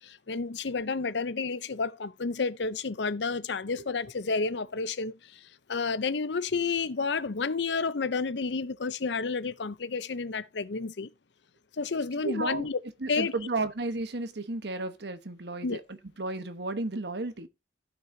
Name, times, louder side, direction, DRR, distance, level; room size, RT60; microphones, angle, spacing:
voice 1, 0.0-11.1 11.8-12.8 13.1-13.3 15.6-15.8, left 4 dB, 70° left, 0.7 m, -31 dB
voice 2, 12.2-12.7 13.0-15.8 16.2-17.5, right 2 dB, 60° right, 1.1 m, -33 dB
15.5 x 6.1 x 2.7 m
head